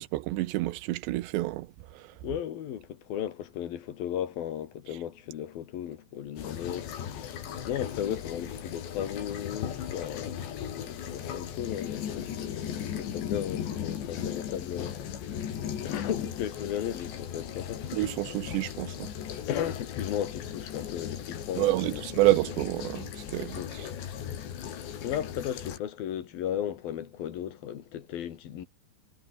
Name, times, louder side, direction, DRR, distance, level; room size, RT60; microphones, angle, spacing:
voice 1, 0.0-1.7 2.0-2.1 17.9-19.1 21.6-23.9, right 17 dB, 85° right, 3.2 m, -28 dB
voice 2, 2.2-15.4 15.8-18.0 19.5-22.1 23.6-23.7 25.0-28.7, left 10 dB, 60° left, 3.6 m, -35 dB
sound 1, 6.4-25.8, left 9 dB, 80° left, 5.3 m, -37 dB
omnidirectional pair, 4.9 m